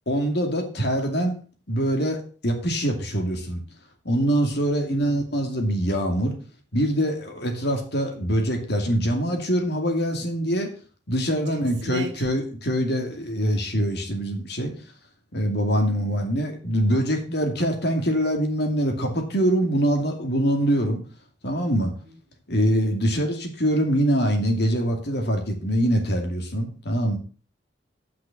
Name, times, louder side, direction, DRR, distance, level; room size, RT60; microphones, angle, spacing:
voice 1, 0.1-1.4 1.7-3.6 4.0-6.4 6.7-10.7 11.1-14.7 15.3-21.0 21.4-21.9 22.5-27.2, equal, 55° left, 2.5 m, -24 dB
voice 2, 4.8-5.2 11.3-12.1, right 1 dB, 65° right, 2.3 m, -36 dB
8.7 x 6.0 x 7.0 m
head